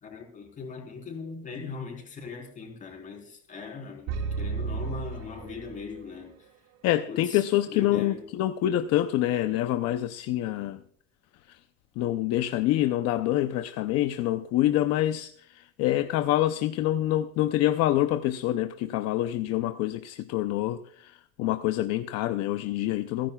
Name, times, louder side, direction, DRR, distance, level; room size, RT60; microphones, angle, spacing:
voice 1, 0.0-6.5 7.1-8.3, left 5 dB, 25° left, 4.2 m, -40 dB
sound 1, 4.1-6.2, right 5 dB, 55° right, 1.5 m, -33 dB
voice 2, 6.8-10.8 11.5-11.6 12.0-23.3, left 13 dB, 55° left, 0.7 m, -26 dB
29.0 x 10.5 x 2.4 m
cardioid pair, 175°, 30 cm